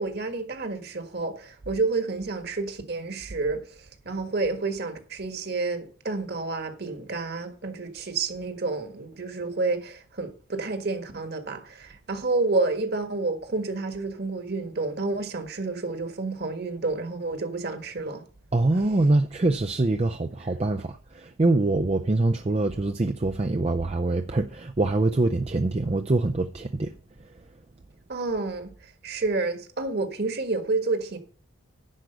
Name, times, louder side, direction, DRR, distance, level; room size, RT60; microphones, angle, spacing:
voice 1, 0.0-3.6 4.0-18.2 18.7-18.8 28.1-28.7 29.0-31.2, right 3 dB, 50° right, 1.6 m, -29 dB
voice 2, 18.5-26.9, right 2 dB, 30° right, 0.4 m, -24 dB
11.0 x 4.9 x 8.0 m
head